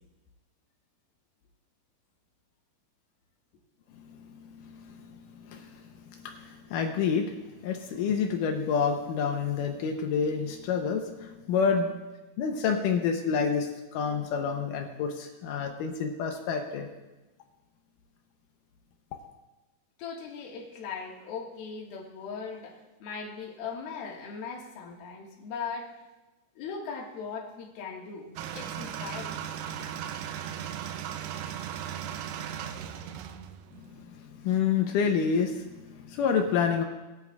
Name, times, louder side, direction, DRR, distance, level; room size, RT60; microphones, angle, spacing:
voice 1, 3.9-11.9 12.4-16.9 33.8-36.8, left 6 dB, 85° left, 4 dB, 1.9 m, -29 dB
voice 2, 20.0-25.9 26.6-29.4, left 5 dB, 70° left, -1 dB, 3.4 m, -39 dB
sound 1, 28.4-34.0, right 9 dB, 85° right, 2.7 m, -37 dB
21.5 x 9.3 x 2.4 m, 1.1 s
omnidirectional pair, 4.7 m